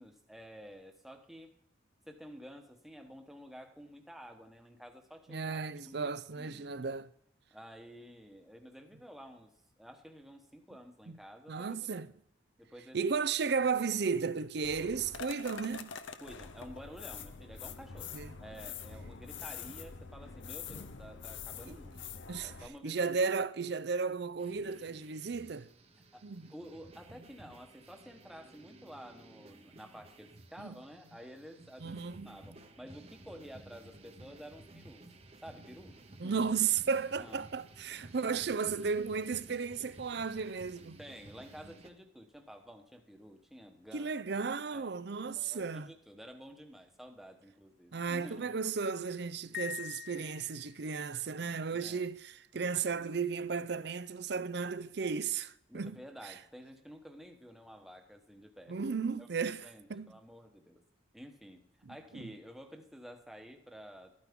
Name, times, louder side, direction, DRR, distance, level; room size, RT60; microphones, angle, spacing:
voice 1, 0.0-1.5 2.1-6.8 7.5-11.7 12.6-13.2 16.2-22.1 22.4-23.1 26.1-32.0 32.2-35.1 35.4-36.0 36.2-36.5 37.2-37.5 38.3-38.4 41.0-44.1 44.7-45.0 45.3-48.6 51.4-52.0 52.5-52.6 55.7-58.8 59.2-59.3 59.6-60.8 61.1-64.1, equal, ahead, 1.1 m, -51 dB
voice 2, 5.3-7.1 11.1-11.2 11.5-12.1 12.9-15.9 18.1-18.4 21.7-21.8 22.3-22.5 22.8-25.7 26.2-26.5 30.6-30.7 31.8-32.4 36.2-41.0 43.9-45.9 47.9-56.3 58.7-60.1 61.8-62.3, right 5 dB, 60° right, 0.5 m, -34 dB
sound 1, 14.6-22.7, left 6 dB, 75° left, 0.8 m, -45 dB
sound 2, 24.4-41.9, right 2 dB, 30° right, 0.9 m, -55 dB
Piano, 49.5-51.0, left 10 dB, 50° left, 0.4 m, -43 dB
13.5 x 9.4 x 3.6 m
head